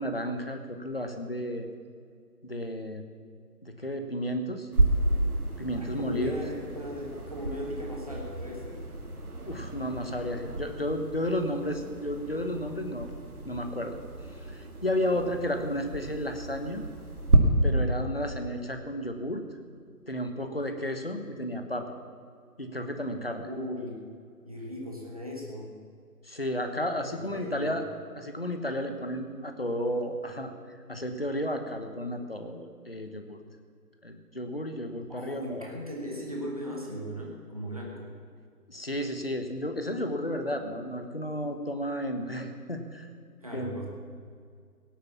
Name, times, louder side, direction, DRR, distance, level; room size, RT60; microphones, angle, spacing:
voice 1, 0.0-1.7 2.4-3.0 3.6-4.7 5.6-6.4 9.4-13.1 13.4-14.0 14.4-16.9 17.6-19.4 20.1-22.0 22.6-23.5 26.2-27.8 28.1-33.4 34.0-35.7 38.7-43.1 43.5-43.7, equal, 40° left, 6 dB, 1.1 m, -32 dB
sound 1, 4.7-17.4, right 2 dB, 65° right, 2.1 m, -31 dB
voice 2, 5.8-8.8 15.0-15.3 17.8-18.2 23.4-24.0 24.4-25.8 27.1-27.8 35.1-38.2 43.4-43.9, equal, 25° right, -2 dB, 1.3 m, -38 dB
17.0 x 8.1 x 7.3 m, 2.2 s
figure-of-eight pair, 175°, 47 cm